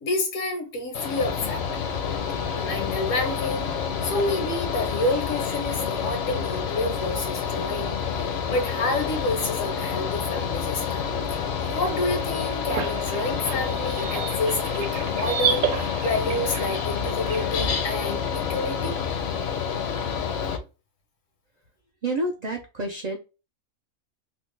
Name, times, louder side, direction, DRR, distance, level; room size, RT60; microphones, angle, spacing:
voice 1, 0.0-1.6 2.5-3.7 4.0-19.0 19.3-19.9, left 2 dB, 85° left, 1.3 m, -29 dB
Mechanical fan, 0.9-20.6, left 7 dB, 60° left, 0.8 m, -28 dB
sound 1, 12.0-17.5, right 7 dB, 85° right, 1.0 m, -32 dB
voice 2, 22.0-23.2, right 1 dB, 70° right, 0.4 m, -28 dB
2.9 x 2.1 x 3.1 m
omnidirectional pair, 1.3 m